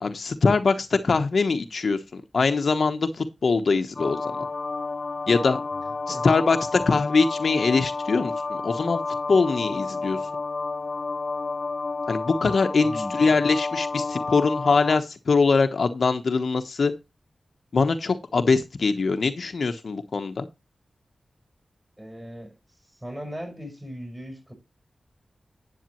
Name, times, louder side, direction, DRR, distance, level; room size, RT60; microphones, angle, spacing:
voice 1, 0.0-4.2 5.3-5.6 6.1-9.0 9.3-10.2 12.1-16.9 17.7-20.5, left 4 dB, 70° left, 1.0 m, -22 dB
sound 1, 4.0-15.0, left 3 dB, 55° left, 0.6 m, -30 dB
voice 2, 6.1-6.4 12.8-13.2 22.0-22.6 23.0-24.5, equal, 20° right, 5.6 m, -38 dB
10.5 x 8.3 x 3.1 m
wide cardioid pair, 70°, 0 cm